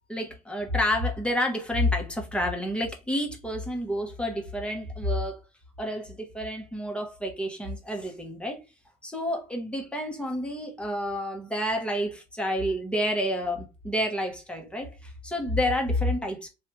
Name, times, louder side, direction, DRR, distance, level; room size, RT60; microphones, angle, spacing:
voice 1, 0.1-5.4 5.8-8.6 9.0-16.5, left 1 dB, 5° left, 1.0 m, -29 dB
3.1 x 2.4 x 3.1 m
cardioid pair, 110°, 17 cm